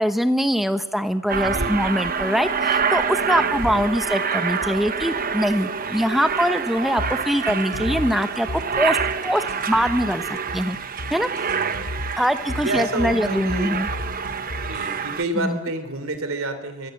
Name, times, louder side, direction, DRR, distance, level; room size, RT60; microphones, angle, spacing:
voice 1, 0.0-9.0 9.2-10.8 11.1-11.3 12.2-13.9 15.4-15.6, equal, ahead, 9 dB, 0.9 m, -23 dB
Aircraft, 1.3-15.2, right 6 dB, 40° right, 1.0 m, -27 dB
voice 2, 1.4-1.8 3.4-3.8 5.8-6.0 11.5-11.9 12.6-13.7 14.6-16.9, right 2 dB, 65° right, 10 dB, 3.1 m, -29 dB
sound 1, 7.0-15.0, left 1 dB, 90° left, 1.4 m, -34 dB
28.5 x 24.0 x 7.8 m, 1.2 s
head